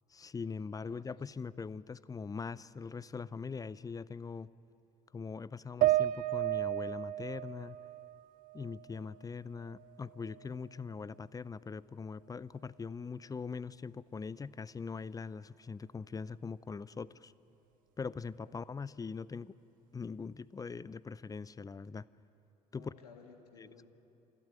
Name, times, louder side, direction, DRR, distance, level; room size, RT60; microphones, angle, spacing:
voice 1, 0.1-4.5 5.1-7.8 8.5-17.3 18.0-19.5 19.9-22.1 22.7-22.9 23.6-23.7, left 5 dB, 20° left, 20 dB, 0.5 m, -42 dB
voice 2, 0.7-1.5 18.4-18.8 22.7-23.9, left 5 dB, 75° left, 3 dB, 2.4 m, -59 dB
sound 1, 5.8-9.2 9.6-10.6, right 15 dB, 45° right, 0.4 m, -34 dB
27.5 x 12.0 x 9.0 m, 2.9 s
figure-of-eight pair, 60°, 20 cm